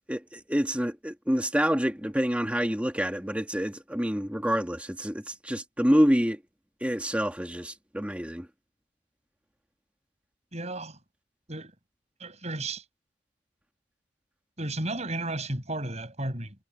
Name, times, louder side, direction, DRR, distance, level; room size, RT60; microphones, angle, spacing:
voice 1, 0.1-6.4 6.8-8.5, equal, 5° right, 2.1 m, -27 dB
voice 2, 10.5-11.0 11.5-11.7 12.2-12.8 14.6-16.6, right 2 dB, 35° right, 7.5 m, -33 dB
head